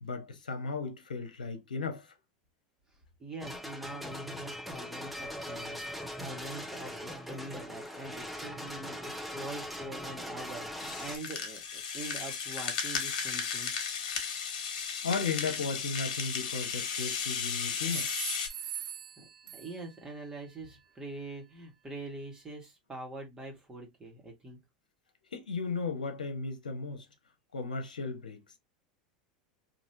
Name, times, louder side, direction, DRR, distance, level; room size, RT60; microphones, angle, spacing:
voice 1, 0.0-2.1 15.0-18.3 25.3-27.1 27.5-28.4, left 4 dB, 85° left, 0.8 m, -35 dB
voice 2, 2.9-13.7 19.2-24.6, right 2 dB, 20° right, 1.4 m, -44 dB
sound 1, 3.4-11.2, equal, ahead, 0.8 m, -40 dB
Rattle (instrument), 10.8-18.5, left 6 dB, 65° left, 1.2 m, -35 dB
sound 2, 16.7-17.3 17.9-20.1, right 10 dB, 70° right, 0.7 m, -42 dB
4.2 x 2.7 x 2.7 m
hypercardioid pair, 85°, 4 cm